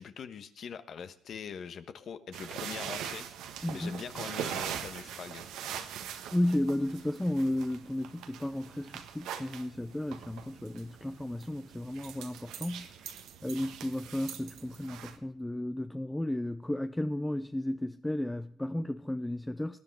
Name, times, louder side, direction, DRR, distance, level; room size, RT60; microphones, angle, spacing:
voice 1, 0.0-3.3 3.7-5.9, left 7 dB, 60° left, 1.3 m, -43 dB
sound 1, 2.3-15.2, right 9 dB, 90° right, 1.6 m, -42 dB
voice 2, 3.6-4.0 6.3-13.1 13.4-19.8, left 1 dB, 10° left, 0.6 m, -33 dB
19.0 x 10.5 x 4.8 m
cardioid pair, 90°, 0 cm